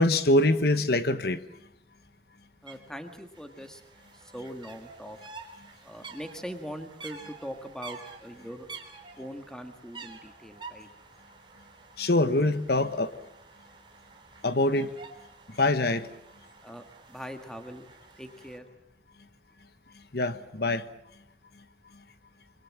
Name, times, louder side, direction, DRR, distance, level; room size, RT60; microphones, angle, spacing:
voice 1, 0.0-1.4 12.0-13.1 14.4-14.9 15.5-16.1 20.1-20.9, left 2 dB, 60° left, 12 dB, 1.2 m, -24 dB
voice 2, 2.6-3.8 4.1-5.2 5.8-8.7 9.2-10.9 16.6-17.9 18.2-18.7, equal, 5° left, 6 dB, 1.6 m, -41 dB
sound 1, 2.7-2.8 3.0-18.6, right 4 dB, 25° right, 3.4 m, -49 dB
25.5 x 24.0 x 7.4 m, 0.77 s
head